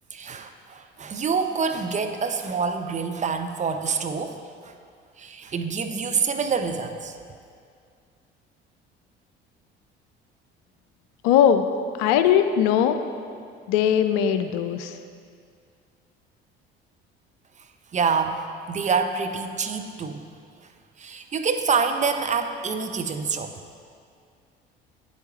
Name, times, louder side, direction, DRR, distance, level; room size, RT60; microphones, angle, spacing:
voice 1, 0.1-4.4 5.2-7.1 17.9-18.4 18.7-20.2 21.0-23.5, right 5 dB, 25° right, 6 dB, 0.5 m, -26 dB
voice 2, 11.2-11.6 12.0-13.0 13.7-14.9, left 9 dB, 55° left, 9 dB, 0.5 m, -20 dB
9.5 x 8.0 x 3.1 m, 2.2 s
figure-of-eight pair, 55°, 30 cm